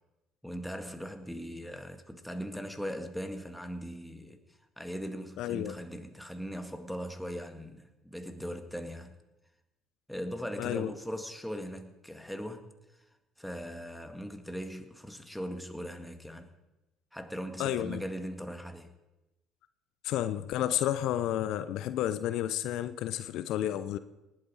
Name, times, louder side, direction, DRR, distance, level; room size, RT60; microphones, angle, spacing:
voice 1, 0.4-4.4 4.8-9.1 10.1-12.7 13.4-16.5 17.1-18.9, equal, ahead, 1.8 m, -39 dB
voice 2, 5.4-5.8 10.6-10.9 17.6-18.0 20.0-24.0, left 12 dB, 65° left, 0.5 m, -31 dB
19.0 x 9.0 x 4.8 m
hypercardioid pair, 60°, 0 cm